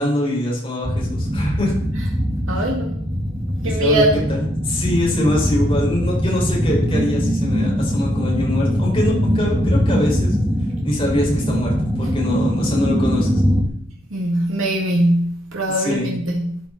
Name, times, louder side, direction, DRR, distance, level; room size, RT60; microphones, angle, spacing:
voice 1, 0.0-1.7 3.6-10.4 10.8-13.4 15.7-16.1, left 1 dB, 25° left, 5.3 m, -23 dB
sound 1, 0.8-13.6, equal, 15° right, 1.6 m, -21 dB
voice 2, 2.5-3.0 3.6-4.2 14.1-16.6, equal, 70° right, 2.0 m, -21 dB
13.0 x 10.5 x 4.2 m
head